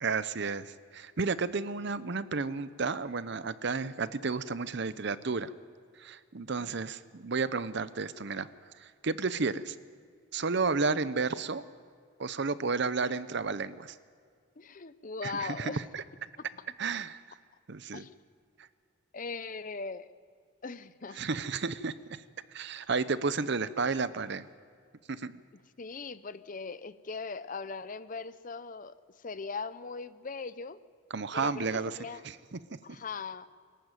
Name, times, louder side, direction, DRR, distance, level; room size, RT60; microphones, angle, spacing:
voice 1, 0.0-5.5 6.0-8.5 8.8-9.7 10.3-11.6 12.2-13.9 15.2-16.0 16.8-17.2 17.7-18.0 21.2-22.2 22.5-24.5 25.1-25.3 31.1-31.9 32.2-32.6, right 4 dB, 55° right, 15 dB, 0.7 m, -32 dB
voice 2, 14.6-15.8 16.5-16.7 17.9-18.1 19.1-20.1 20.6-21.2 25.5-30.8 31.3-32.2 32.8-33.5, left 4 dB, 40° left, 14 dB, 0.6 m, -40 dB
24.0 x 14.5 x 9.1 m, 2.2 s
head